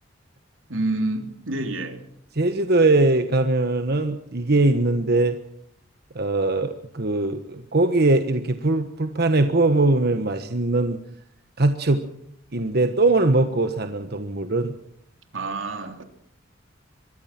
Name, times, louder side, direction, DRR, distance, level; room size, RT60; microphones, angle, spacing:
voice 1, 0.7-2.0 15.3-16.0, right 2 dB, 90° right, 3.5 m, -28 dB
voice 2, 2.3-5.4 6.1-11.0 11.6-12.0 12.5-14.7, right 2 dB, 55° right, 1.3 m, -21 dB
25.0 x 22.0 x 6.0 m
head